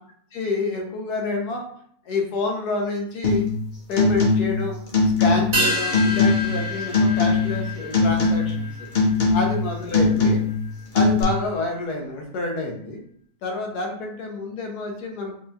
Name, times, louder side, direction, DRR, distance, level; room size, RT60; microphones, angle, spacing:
voice 1, 0.3-1.7 2.1-3.5 3.9-8.7 9.3-10.4 10.9-13.0 13.4-15.4, left 3 dB, 85° left, 1 dB, 1.3 m, -28 dB
sound 1, 3.2-3.6 3.9-4.6 4.9-5.6 5.9-6.6 6.9-7.6 7.9-8.6 8.9-9.6 9.9-10.6 10.9-11.2, left 3 dB, 50° left, 0.6 m, -20 dB
sound 2, 5.5-10.2 10.5-10.6, equal, 80° right, 1.6 m, -29 dB
4.6 x 2.2 x 2.7 m, 0.64 s
omnidirectional pair, 1.6 m